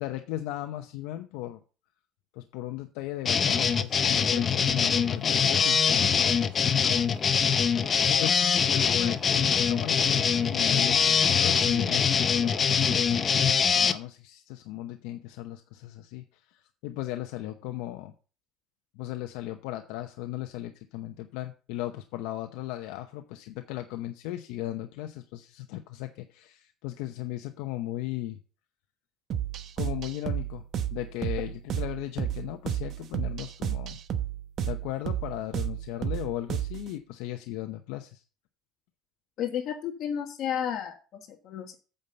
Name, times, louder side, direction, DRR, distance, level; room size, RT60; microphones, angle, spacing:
voice 1, 0.0-1.6 2.3-18.1 19.0-28.4 29.8-30.6 30.9-34.0 34.7-38.2, left 14 dB, 80° left, 6 dB, 0.8 m, -37 dB
sound 1, 3.2-13.9, left 6 dB, 25° left, 0.6 m, -23 dB
sound 2, 29.3-36.9, right 10 dB, 40° right, 0.8 m, -32 dB
voice 2, 39.4-41.7, left 9 dB, 45° left, 5 dB, 1.4 m, -32 dB
8.8 x 5.6 x 6.8 m, 0.36 s
cardioid pair, 170°, 0 cm